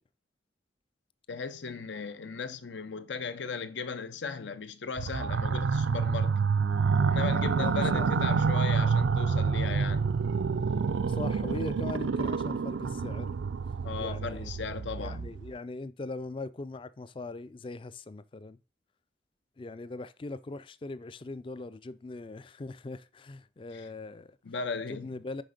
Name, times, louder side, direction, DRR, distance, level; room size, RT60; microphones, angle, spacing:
voice 1, 1.3-6.4 7.1-10.1 13.8-15.3 23.7-23.9 24.4-25.1, left 5 dB, 80° left, 0.7 m, -37 dB
sound 1, 5.0-15.5, right 5 dB, 85° right, 0.4 m, -28 dB
voice 2, 7.6-8.1 11.1-13.3 14.0-14.5 15.0-18.6 19.6-24.4 24.9-25.4, left 3 dB, 30° left, 0.4 m, -40 dB
6.3 x 5.0 x 5.1 m
head